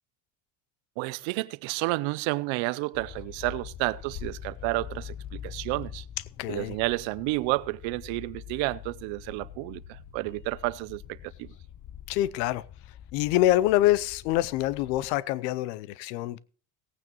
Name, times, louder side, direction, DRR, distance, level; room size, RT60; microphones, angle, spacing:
voice 1, 1.0-6.0 6.5-11.5, right 22 dB, 70° right, 0.7 m, -31 dB
sound 1, 2.9-15.2, left 10 dB, 40° left, 0.7 m, -44 dB
voice 2, 6.4-6.8 12.1-12.6 13.1-16.4, left 15 dB, 85° left, 0.7 m, -25 dB
17.5 x 9.1 x 3.0 m
supercardioid pair, 100°, 48 cm